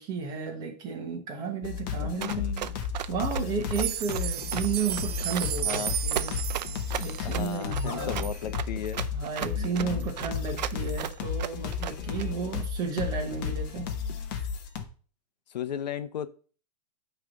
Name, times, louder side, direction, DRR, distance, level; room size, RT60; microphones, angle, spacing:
voice 1, 0.0-2.4 3.1-6.4 7.0-8.3 9.1-13.9, right 5 dB, 20° right, 3 dB, 1.2 m, -33 dB
sound 1, 1.6-14.8, left 6 dB, 30° left, 0.9 m, -33 dB
voice 2, 2.0-2.7 5.6-6.0 7.2-9.0 9.6-10.0 15.5-16.3, left 9 dB, 85° left, 13 dB, 0.8 m, -35 dB
Run, 2.2-12.2, right 10 dB, 85° right, 0.6 m, -35 dB
sound 2, 3.6-8.4 8.9-9.0 9.4-9.5 10.0-10.1, right 11 dB, 40° right, 0.4 m, -34 dB
9.3 x 3.3 x 6.4 m, 0.40 s
supercardioid pair, 170°, 21 cm